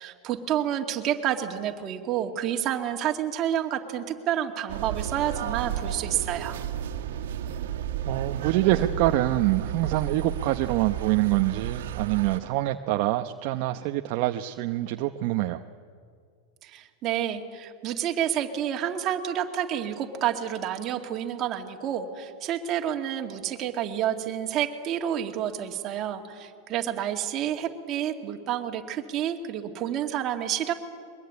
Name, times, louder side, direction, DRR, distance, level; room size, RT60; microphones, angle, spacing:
voice 1, 0.0-6.6 16.6-30.7, right 10 dB, 35° right, 3 dB, 2.3 m, -29 dB
sound 1, 4.7-12.4, right 10 dB, 80° right, 1.9 m, -33 dB
voice 2, 8.1-15.6, right 15 dB, 50° right, 6 dB, 0.9 m, -25 dB
22.5 x 21.5 x 9.7 m, 2.1 s
supercardioid pair, 145°, 0 cm